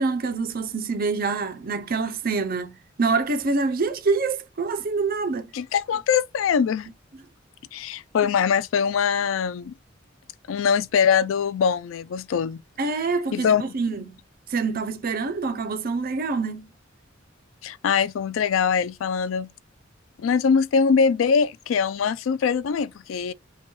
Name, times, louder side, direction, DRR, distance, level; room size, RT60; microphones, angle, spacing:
voice 1, 0.0-5.5 12.8-14.2 14.5-16.7, right 4 dB, 50° right, 0.6 m, -26 dB
voice 2, 5.5-6.9 7.7-9.7 10.5-12.6 13.3-13.6 17.6-19.5 20.2-23.3, left 6 dB, 85° left, 0.4 m, -22 dB
5.7 x 2.2 x 3.0 m
head